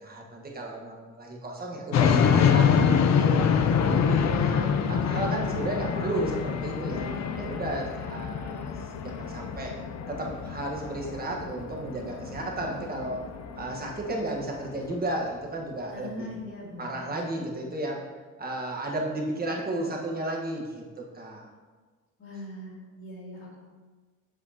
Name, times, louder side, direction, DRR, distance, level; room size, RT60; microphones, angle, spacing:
voice 1, 0.0-2.7 3.1-3.5 3.9-7.1 7.4-9.7 10.1-13.2 13.6-16.3 16.8-18.1 18.4-21.5, right 1 dB, 30° right, -1 dB, 1.4 m, -33 dB
sound 1, 1.9-15.0, left 7 dB, 60° left, 0.6 m, -26 dB
voice 2, 15.9-17.6 22.2-23.6, left 1 dB, 45° left, -6 dB, 2.0 m, -41 dB
7.5 x 5.2 x 2.9 m, 1.4 s
cardioid pair, 90°, 30 cm